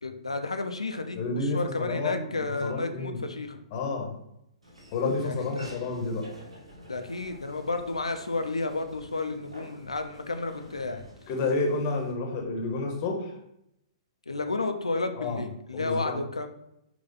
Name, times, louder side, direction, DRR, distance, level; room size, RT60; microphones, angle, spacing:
voice 1, 0.0-3.6 5.2-5.7 6.9-11.0 14.3-16.5, left 3 dB, 75° left, 7 dB, 0.4 m, -32 dB
voice 2, 1.1-3.2 3.7-4.2 4.9-6.2 11.3-13.3 15.1-15.4 15.7-16.2, left 3 dB, 35° left, 1 dB, 0.8 m, -30 dB
Laughter / Walk footsteps, 4.6-12.1, equal, 70° right, 1.1 m, -49 dB
4.2 x 2.3 x 3.9 m, 0.80 s
figure-of-eight pair, 115°, 3 cm